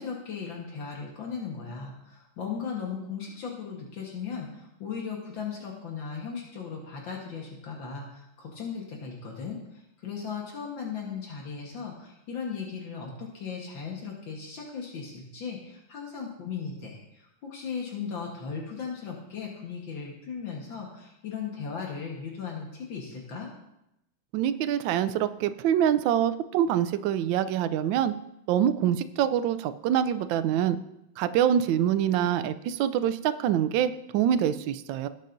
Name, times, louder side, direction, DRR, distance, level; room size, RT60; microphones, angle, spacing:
voice 1, 0.0-23.5, left 6 dB, 70° left, -1 dB, 2.1 m, -37 dB
voice 2, 24.3-28.1 28.5-30.8 31.2-35.1, right 10 dB, 75° right, 12 dB, 1.2 m, -25 dB
17.5 x 7.4 x 2.6 m, 0.85 s
omnidirectional pair, 2.2 m